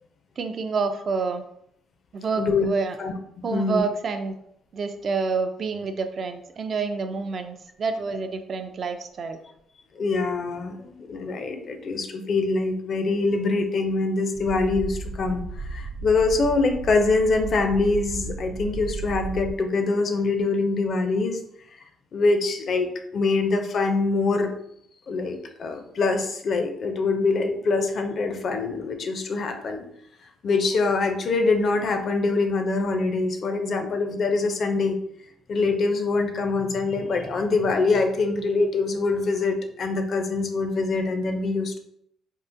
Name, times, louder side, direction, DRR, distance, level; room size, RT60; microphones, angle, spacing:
voice 1, 0.4-1.4 2.1-3.0 3.4-4.3 4.7-9.4, right 4 dB, 40° right, 7 dB, 0.3 m, -28 dB
voice 2, 2.4-2.7 3.0-3.8 9.9-21.4 21.7-21.8 22.1-24.5 25.1-29.8 30.4-35.0 35.5-41.8, left 3 dB, 45° left, 5 dB, 0.4 m, -24 dB
sound 1, 14.3-19.5, right 3 dB, 85° right, 0.7 m, -34 dB
3.6 x 2.4 x 2.5 m, 0.73 s
cardioid pair, 125°, 0 cm